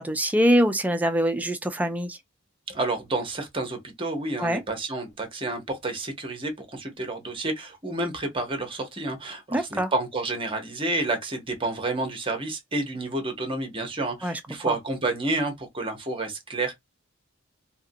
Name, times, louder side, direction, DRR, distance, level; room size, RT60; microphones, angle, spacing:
voice 1, 0.0-2.2 4.4-4.6 9.5-9.9 14.2-14.4 14.7-14.8, equal, 10° right, 0.4 m, -23 dB
voice 2, 2.7-16.8, right 2 dB, 25° right, 0.8 m, -30 dB
2.8 x 2.6 x 2.6 m
head